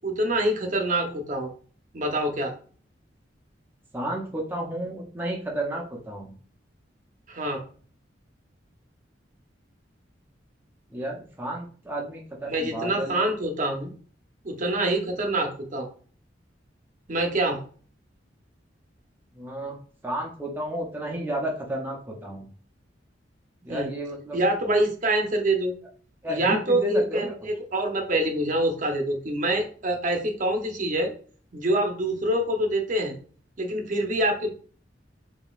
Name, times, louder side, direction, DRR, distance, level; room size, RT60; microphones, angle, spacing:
voice 1, 0.0-1.5 1.9-2.5 7.3-7.6 12.4-13.9 14.4-15.9 17.1-17.6 23.7-23.9 24.3-25.7 26.3-27.3 27.7-31.1 31.5-33.1 33.6-34.5, right 1 dB, 45° right, 3 dB, 0.7 m, -25 dB
voice 2, 3.9-6.3 10.9-13.2 19.3-19.8 20.0-22.5 23.6-24.4 26.2-27.4, right 1 dB, 10° right, -1 dB, 0.6 m, -32 dB
5.1 x 2.7 x 2.4 m, 0.43 s
head